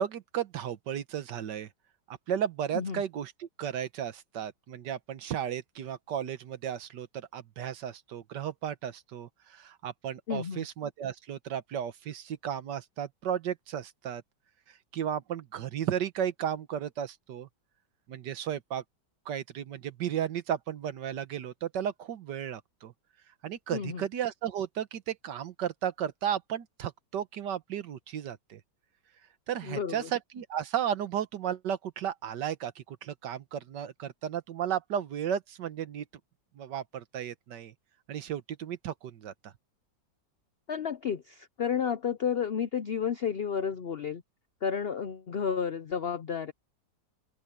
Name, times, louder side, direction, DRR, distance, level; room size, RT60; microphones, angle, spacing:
voice 1, 0.0-1.7 2.3-14.2 14.9-17.5 18.1-18.8 19.3-22.9 23.4-28.6 29.5-36.0 36.6-37.7 38.1-39.5, right 9 dB, 75° right, 1.6 m, -34 dB
voice 2, 10.3-10.7 23.7-24.1 29.6-30.1 40.7-44.2 44.6-46.5, left 7 dB, 70° left, 0.5 m, -31 dB
open air
omnidirectional pair, 1.9 m